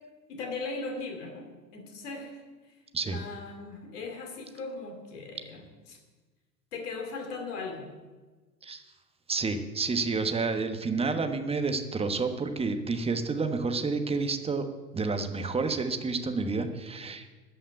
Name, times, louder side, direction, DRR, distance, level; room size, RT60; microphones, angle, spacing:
voice 1, 0.3-2.4 3.1-5.6 5.9-6.0 6.7-7.9, left 3 dB, 65° left, 3 dB, 2.7 m, -38 dB
voice 2, 9.3-14.7 14.9-17.3, right 4 dB, 10° right, 7 dB, 1.2 m, -29 dB
14.0 x 5.7 x 9.4 m, 1.3 s
figure-of-eight pair, 90°, 50 cm